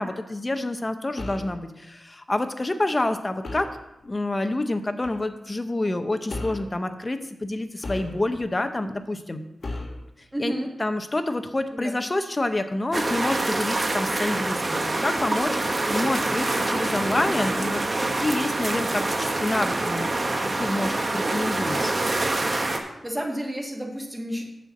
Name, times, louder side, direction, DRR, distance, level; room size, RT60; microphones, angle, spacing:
voice 1, 0.0-3.7 4.0-9.4 10.4-10.5 10.8-21.9, left 2 dB, 20° left, 8 dB, 0.6 m, -28 dB
sound 1, 1.2-1.6 3.4-3.8 5.0-5.3 6.3-6.7 7.8-8.5 9.6-10.0, left 2 dB, 50° left, 1.4 m, -35 dB
voice 2, 10.3-10.7 11.7-12.0 23.0-24.4, equal, 10° right, 1 dB, 1.4 m, -30 dB
sound 2, 12.9-22.8, right 2 dB, 30° right, 1.0 m, -26 dB
10.5 x 4.4 x 7.1 m, 0.89 s
wide cardioid pair, 160°, 0 cm